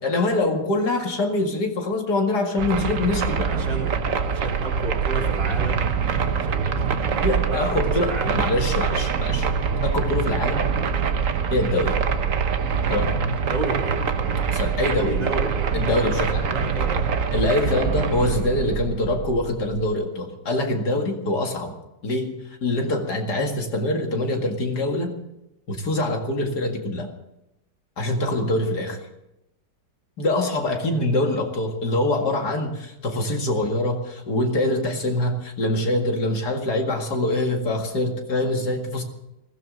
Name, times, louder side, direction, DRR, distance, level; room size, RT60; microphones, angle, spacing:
voice 1, 0.0-3.5 7.2-9.5 9.8-10.7 11.5-12.0 12.9-13.2 14.5-15.2 15.7-16.6 17.3-21.7 22.0-22.3 22.6-25.1 25.7-27.1 28.0-29.0 30.2-39.0, left 2 dB, 65° left, 3 dB, 2.6 m, -24 dB
sound 1, 2.6-19.9, right 6 dB, 55° right, 1.3 m, -24 dB
voice 2, 3.5-4.0 4.3-6.0 6.4-7.0 7.4-8.5 11.6-11.9 13.5-14.0 14.9-15.8 16.5-17.0 17.8-18.1 28.5-28.8 30.8-31.1, right 2 dB, 75° right, -1 dB, 3.9 m, -32 dB
20.5 x 16.0 x 3.9 m, 0.89 s
omnidirectional pair, 1.9 m